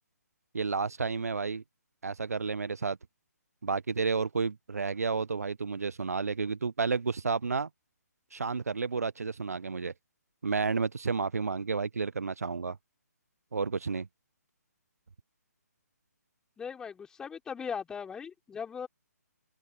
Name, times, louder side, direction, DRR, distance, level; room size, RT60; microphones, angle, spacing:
voice 1, 0.5-1.6 2.0-3.0 3.6-7.7 8.3-9.9 10.4-12.8 13.5-14.1, right 4 dB, 60° right, 1.1 m, -31 dB
voice 2, 16.6-18.9, left 6 dB, 5° left, 4.1 m, -39 dB
figure-of-eight pair, 140°, 9 cm